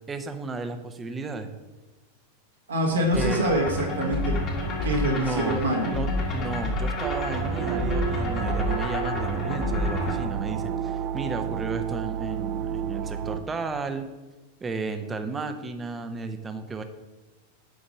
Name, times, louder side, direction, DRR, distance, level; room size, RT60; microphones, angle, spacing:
voice 1, 0.1-1.5 3.1-3.4 5.1-14.1 14.6-16.8, right 3 dB, 15° right, 8 dB, 0.7 m, -33 dB
voice 2, 2.7-4.4 4.8-5.9, right 1 dB, 75° right, -2 dB, 1.5 m, -25 dB
sound 1, 3.1-10.2, left 2 dB, 35° left, 1.7 m, -29 dB
sound 2, 7.0-13.4, right 9 dB, 40° right, 0.3 m, -31 dB
8.1 x 5.1 x 5.1 m, 1.2 s
figure-of-eight pair, 90°, 0 cm